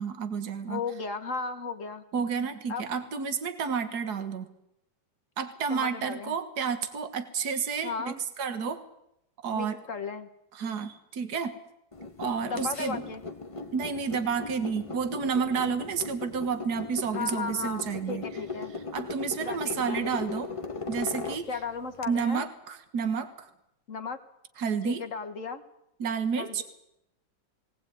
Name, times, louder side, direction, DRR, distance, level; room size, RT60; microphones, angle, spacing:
voice 1, 0.0-0.8 2.1-4.5 5.4-8.1 8.4-8.8 9.4-9.8 10.6-11.6 12.2-13.0 13.7-18.2 18.9-20.5 20.9-21.5 22.1-23.5 24.6-25.0 26.0-26.6, right 6 dB, 60° right, 9 dB, 2.2 m, -30 dB
voice 2, 0.7-2.0 2.7-3.0 5.7-6.4 7.8-8.2 9.5-10.3 12.4-13.2 17.1-18.7 19.4-20.1 21.5-22.5 23.9-24.2 24.8-25.6 26.4-26.6, left 5 dB, 45° left, 8 dB, 1.7 m, -35 dB
sound 1, 11.9-22.2, left 4 dB, 20° left, 1.2 m, -38 dB
20.5 x 18.5 x 9.2 m, 0.81 s
omnidirectional pair, 1.9 m